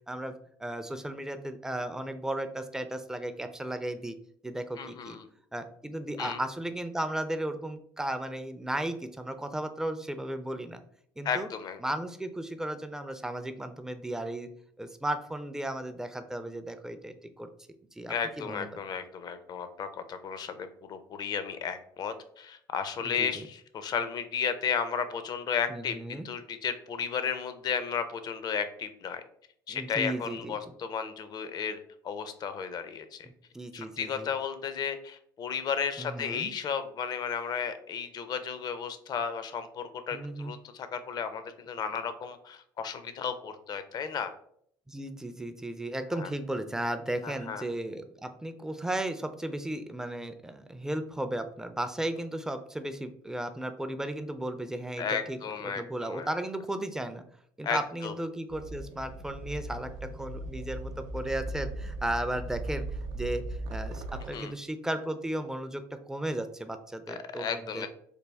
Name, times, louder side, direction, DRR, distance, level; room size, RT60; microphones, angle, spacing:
voice 1, 0.1-4.1 4.4-5.2 5.5-10.8 11.2-11.5 11.8-14.5 14.8-17.5 18.0-18.7 23.0-23.3 25.7-26.3 29.7-30.6 33.5-34.3 36.0-36.5 40.1-40.5 44.9-57.2 57.6-62.9 63.1-63.4 63.7-67.9, right 1 dB, 5° right, 9 dB, 0.4 m, -35 dB
voice 2, 4.8-5.3 6.2-6.4 11.2-11.8 18.1-29.2 29.7-33.3 33.7-44.3 46.1-46.3 47.2-47.6 55.0-56.4 57.6-58.1 64.3-64.5 67.1-67.9, left 7 dB, 45° left, 10 dB, 0.5 m, -34 dB
sound 1, 58.5-64.3, right 1 dB, 70° right, 0.4 m, -38 dB
3.4 x 2.3 x 3.3 m, 0.66 s
supercardioid pair, 80°, 9 cm